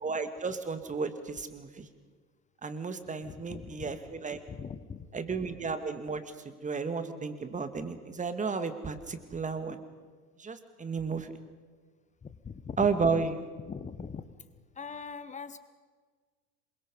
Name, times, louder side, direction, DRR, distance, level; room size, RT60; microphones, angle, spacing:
voice 1, 0.0-1.9 2.6-4.4 5.1-9.8 10.4-11.3 12.8-13.4, right 4 dB, 15° right, 9 dB, 2.1 m, -33 dB
voice 2, 3.2-3.9 4.5-5.1 12.2-12.9 13.7-14.3 14.8-15.6, left 6 dB, 15° left, 13 dB, 1.2 m, -41 dB
27.0 x 23.5 x 5.5 m, 1.5 s
figure-of-eight pair, 80°, 46 cm